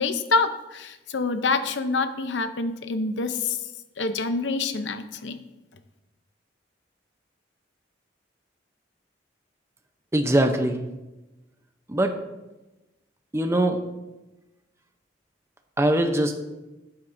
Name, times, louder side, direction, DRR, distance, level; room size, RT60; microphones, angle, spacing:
voice 1, 0.0-3.6 4.0-5.4, left 3 dB, 85° left, 10 dB, 0.7 m, -26 dB
voice 2, 10.1-10.8 11.9-12.1 13.3-13.8 15.8-16.4, right 1 dB, 15° right, 6 dB, 0.7 m, -22 dB
12.0 x 8.7 x 2.7 m, 1.0 s
head